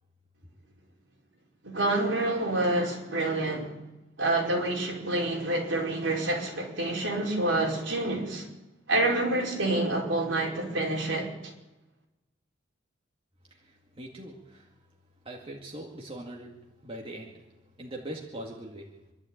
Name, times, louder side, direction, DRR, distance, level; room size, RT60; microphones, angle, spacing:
voice 1, 1.6-3.7 4.2-8.4 8.9-11.3, right 2 dB, 65° right, 5.1 m, -27 dB
voice 2, 13.5-14.7 15.2-16.5 16.8-17.5 17.8-18.9, right 1 dB, 30° right, 2.1 m, -41 dB
26.0 x 12.0 x 8.8 m
head